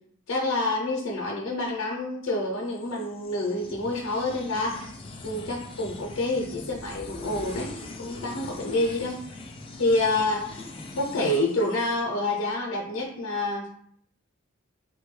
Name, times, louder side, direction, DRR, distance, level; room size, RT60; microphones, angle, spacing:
voice 1, 0.3-4.8 5.2-7.7 8.0-9.4 9.8-10.6 11.0-13.7, left 2 dB, 90° left, -2 dB, 0.6 m, -27 dB
sound 1, 2.7-12.4, left 2 dB, 25° left, 0.3 m, -42 dB
3.0 x 2.2 x 3.1 m, 0.65 s
head